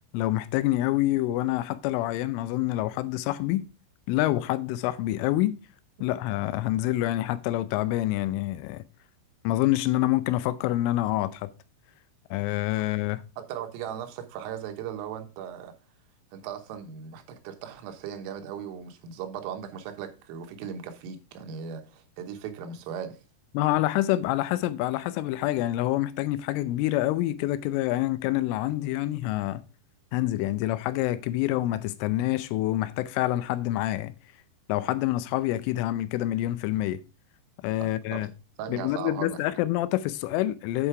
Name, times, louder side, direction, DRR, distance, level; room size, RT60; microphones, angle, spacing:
voice 1, 0.1-3.7 4.1-5.6 6.0-8.8 9.4-11.5 12.3-13.2 23.5-29.6 30.1-34.1 34.7-37.0 37.6-38.3 38.7-40.9, left 15 dB, 85° left, 3.0 m, -27 dB
voice 2, 13.4-15.8 16.3-23.2 37.8-38.3 38.6-39.4, right 8 dB, 85° right, 3.7 m, -38 dB
8.4 x 5.6 x 4.7 m
omnidirectional pair, 5.8 m